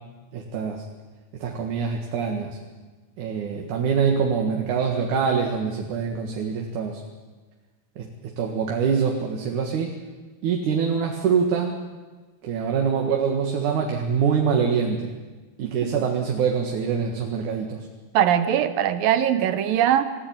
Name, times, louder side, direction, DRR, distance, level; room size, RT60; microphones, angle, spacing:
voice 1, 0.3-0.8 1.4-2.6 3.2-7.0 8.0-8.1 8.4-10.0 10.4-11.8 12.4-15.1 15.6-17.9, right 6 dB, 65° right, 2 dB, 3.1 m, -24 dB
voice 2, 18.1-20.0, right 10 dB, 80° right, 11 dB, 2.9 m, -20 dB
26.0 x 16.0 x 9.0 m, 1.3 s
omnidirectional pair, 4.0 m